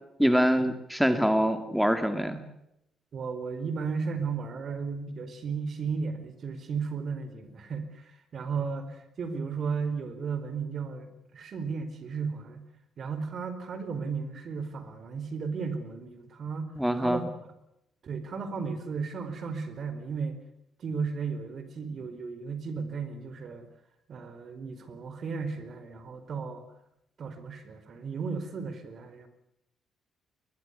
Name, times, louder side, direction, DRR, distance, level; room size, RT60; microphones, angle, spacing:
voice 1, 0.2-2.4 16.8-17.2, equal, ahead, 9 dB, 2.2 m, -24 dB
voice 2, 3.1-12.6 13.0-16.7 17.0-17.2 18.0-20.4 20.8-23.7 24.1-26.7 27.2-29.3, right 5 dB, 55° right, 11 dB, 4.4 m, -34 dB
21.5 x 21.5 x 8.2 m, 0.81 s
cardioid pair, 90°, 0 cm